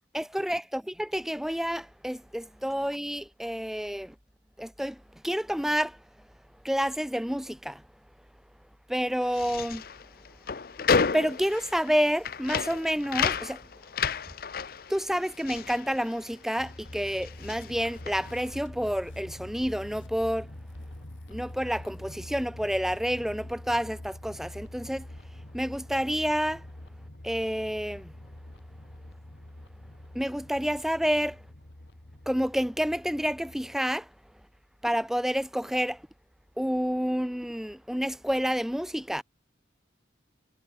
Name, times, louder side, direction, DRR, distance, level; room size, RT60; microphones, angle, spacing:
voice 1, 0.1-4.1 4.6-6.0 6.6-7.8 8.9-9.8 11.1-13.6 14.9-20.5 21.3-25.1 25.5-26.6 27.2-28.1 30.1-31.4 32.3-34.1 34.8-36.0 36.6-39.2, equal, ahead, 0.8 m, -29 dB
sound 1, 9.2-16.7 17.0-18.5, left 5 dB, 50° left, 0.6 m, -31 dB
sound 2, 12.3-22.1, left 1 dB, 85° left, 5.2 m, -59 dB
sound 3, 16.6-33.8, left 1 dB, 65° left, 2.1 m, -45 dB
head